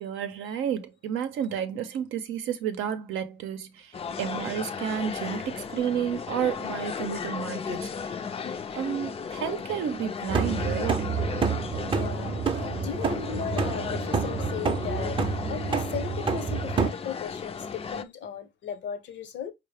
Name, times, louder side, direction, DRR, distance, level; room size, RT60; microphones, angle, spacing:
voice 1, 0.0-3.9 4.2-8.1 8.7-11.0, right 8 dB, 85° right, 0.6 m, -31 dB
sound 1, 3.9-18.0, left 6 dB, 30° left, 0.4 m, -35 dB
sound 2, 10.3-16.9, right 5 dB, 25° right, 0.5 m, -28 dB
voice 2, 11.8-12.4 12.7-19.5, left 8 dB, 65° left, 0.7 m, -37 dB
4.6 x 2.0 x 3.3 m
cardioid pair, 90°, 20 cm